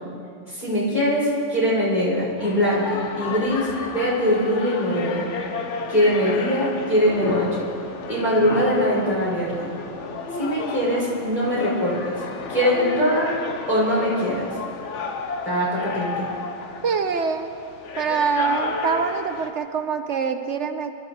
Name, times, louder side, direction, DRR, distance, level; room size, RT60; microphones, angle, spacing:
voice 1, 0.5-5.3 5.9-7.7 8.1-9.7 10.4-12.2 12.5-13.3 13.7-14.5 15.4-16.3, equal, 40° left, -7 dB, 5.6 m, -22 dB
sound 1, 2.4-19.5, left 4 dB, 75° left, 1.3 m, -32 dB
voice 2, 16.8-17.5 18.0-20.9, right 5 dB, 70° right, 7 dB, 1.1 m, -24 dB
24.5 x 13.0 x 4.3 m, 2.4 s
omnidirectional pair, 1.2 m